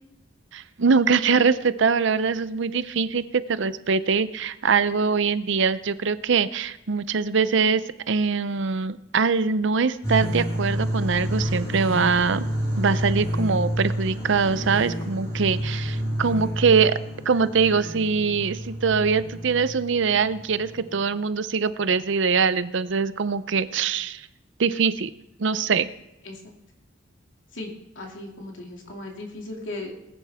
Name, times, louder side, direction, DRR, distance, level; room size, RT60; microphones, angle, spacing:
voice 1, 0.5-12.4 12.8-17.0 17.3-24.3 24.6-25.1 25.4-25.9, right 5 dB, 70° right, 14 dB, 0.6 m, -23 dB
sound 1, 10.0-21.0, equal, 15° left, 5.4 m, -29 dB
voice 2, 27.5-29.9, left 2 dB, 75° left, 0 dB, 2.7 m, -37 dB
19.5 x 10.0 x 3.6 m, 0.93 s
head